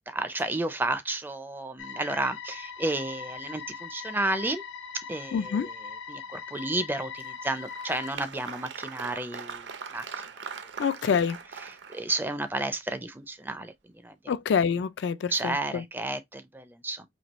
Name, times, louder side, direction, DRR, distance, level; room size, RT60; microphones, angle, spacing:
voice 1, 0.1-4.6 5.1-5.8 6.1-9.7 9.9-10.1 11.6-14.2 15.3-17.0, right 2 dB, 10° right, 0.4 m, -32 dB
sound 1, 1.8-8.2, left 6 dB, 85° left, 0.7 m, -41 dB
voice 2, 5.3-5.7 10.8-11.4 14.3-15.8, left 6 dB, 70° left, 0.3 m, -26 dB
Applause, 7.2-12.5, right 6 dB, 70° right, 0.6 m, -41 dB
4.4 x 2.7 x 2.9 m
head